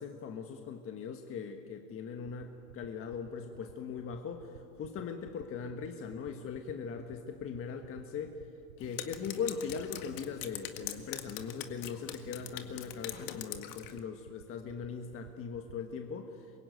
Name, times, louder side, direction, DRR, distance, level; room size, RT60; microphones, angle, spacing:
voice 1, 0.0-8.4 8.8-16.6, left 6 dB, 25° left, 5 dB, 1.5 m, -40 dB
sound 1, 2.7-15.7, right 12 dB, 80° right, 1.3 m, -52 dB
Drip, 8.8-14.0, left 11 dB, 45° left, 1.9 m, -43 dB
25.0 x 22.5 x 9.4 m, 2.8 s
hypercardioid pair, 125°, 49 cm